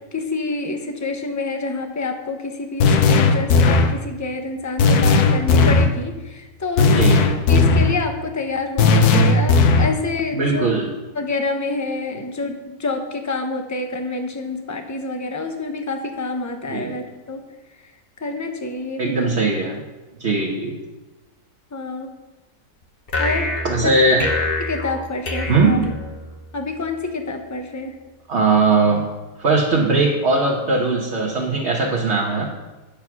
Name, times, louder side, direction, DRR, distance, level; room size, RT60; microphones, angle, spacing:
voice 1, 0.1-7.0 7.5-10.7 11.1-17.4 18.2-19.2 21.7-22.1 23.2-23.5 23.8-23.9 24.6-25.8 26.5-28.0, left 3 dB, 15° left, 5 dB, 0.7 m, -27 dB
sound 1, 2.8-4.0 4.8-6.0 6.8-8.0 8.8-10.0, left 3 dB, 75° left, 1.3 m, -15 dB
voice 2, 10.3-10.9 16.7-16.9 19.0-19.8 20.2-20.8 23.6-24.3 25.5-25.9 28.3-29.0 29.4-32.5, right 3 dB, 45° right, -2 dB, 1.4 m, -19 dB
sound 2, 23.1-26.5, left 2 dB, 40° left, 1.3 m, -26 dB
10.0 x 6.7 x 6.0 m, 1.1 s
omnidirectional pair, 1.7 m